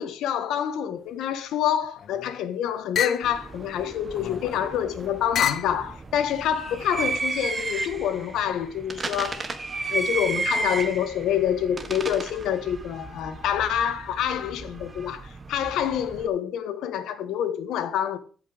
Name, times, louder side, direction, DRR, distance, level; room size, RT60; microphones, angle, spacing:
voice 1, 0.0-9.4 9.9-18.2, left 9 dB, 85° left, 1.3 m, -27 dB
sound 1, 1.8-2.4 3.0-3.3 4.1-4.7 5.3-5.8 6.6-7.2, left 9 dB, 65° left, 0.8 m, -30 dB
sound 2, 3.2-16.3, right 3 dB, 35° right, 1.4 m, -34 dB
15.0 x 5.7 x 5.0 m
cardioid pair, 90°, 0 cm